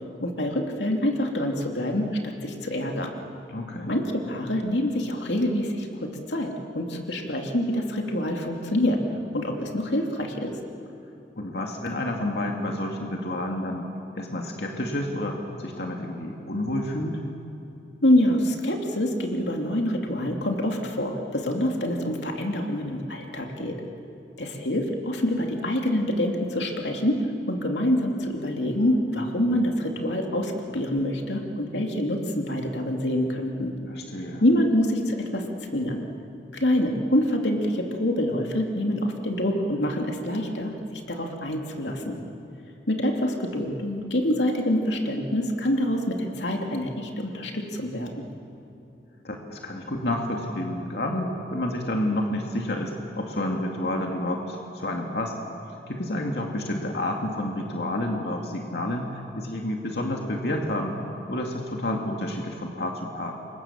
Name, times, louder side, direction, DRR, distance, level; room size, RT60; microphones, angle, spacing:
voice 1, 0.2-3.1 3.9-9.0 9.3-10.5 18.0-23.8 24.4-33.7 34.4-35.4 35.7-36.0 36.5-42.2 42.9-48.2, left 1 dB, 90° left, 2 dB, 2.8 m, -26 dB
voice 2, 3.5-3.9 11.4-13.9 14.2-17.2 33.9-34.4 49.2-55.3 55.9-61.0 61.3-63.3, left 1 dB, 70° left, 1 dB, 2.4 m, -29 dB
28.5 x 24.5 x 7.3 m, 2.9 s
head